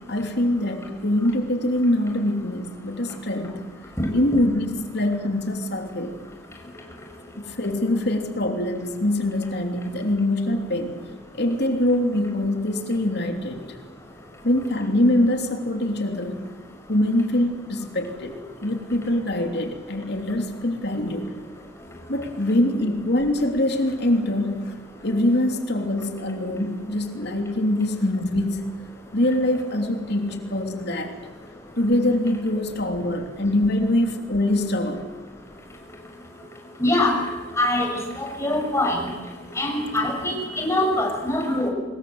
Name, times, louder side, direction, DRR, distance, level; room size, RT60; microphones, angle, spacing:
voice 1, 0.1-3.6 4.1-6.2 7.4-11.0 11.3-13.6 14.4-16.5 16.9-21.3 22.1-24.7 25.0-28.6 29.1-31.1 31.8-35.0, left 1 dB, 60° left, 4 dB, 3.2 m, -24 dB
voice 2, 36.8-37.1 37.6-39.1 39.6-41.7, left 1 dB, 15° left, 1 dB, 6.3 m, -23 dB
25.0 x 22.0 x 8.1 m, 1.3 s
head